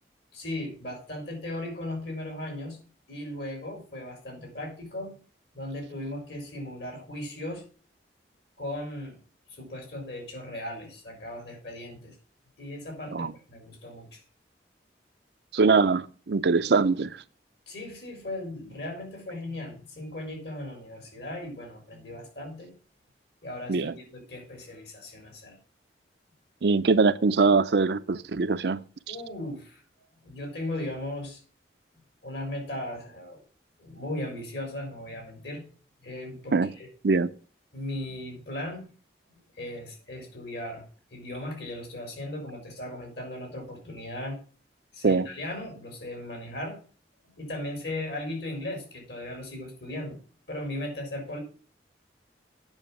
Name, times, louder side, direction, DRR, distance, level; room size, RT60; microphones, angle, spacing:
voice 1, 0.3-2.8 3.1-5.2 5.5-7.6 8.6-9.2 9.5-12.1 12.6-14.2 17.7-22.7 23.4-25.6 29.1-29.8 30.2-31.4 32.2-33.4 33.8-35.6 36.0-36.9 37.7-38.8 39.6-40.8 41.1-44.4 44.9-46.8 47.4-50.2 50.5-51.4, left 1 dB, 65° left, 4.4 m, -37 dB
voice 2, 15.5-17.2 23.7-23.9 26.6-28.8 29.1-29.2 36.5-36.7 37.0-37.3 45.0-45.3, right 4 dB, 65° right, 0.5 m, -22 dB
9.0 x 5.9 x 7.3 m
head